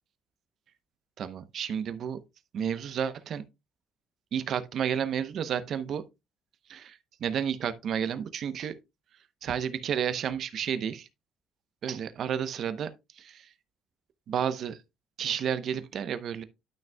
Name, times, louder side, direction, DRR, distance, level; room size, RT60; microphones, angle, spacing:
voice 1, 1.2-2.2 2.5-3.4 4.3-6.0 6.7-8.8 9.4-11.1 11.8-12.9 13.2-13.5 14.3-14.8 15.2-16.4, right 8 dB, 50° right, 0.7 m, -31 dB
11.5 x 6.1 x 2.2 m
cardioid pair, 160°, 0 cm